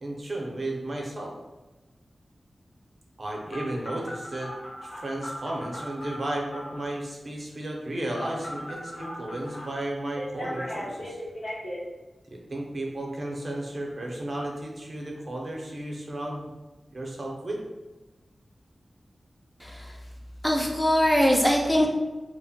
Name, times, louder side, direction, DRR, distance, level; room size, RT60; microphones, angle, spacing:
voice 1, 0.0-1.3 3.2-4.5 4.8-11.2 12.3-16.5 16.9-17.6, right 1 dB, 45° right, -1 dB, 0.5 m, -34 dB
Telephone, 3.5-6.9 8.1-9.6 10.2-11.8, equal, 90° left, 0.8 m, -37 dB
voice 2, 19.6-20.0 20.4-21.9, equal, 15° left, -1 dB, 0.3 m, -22 dB
2.7 x 2.1 x 2.7 m, 1.1 s
wide cardioid pair, 110°, 0 cm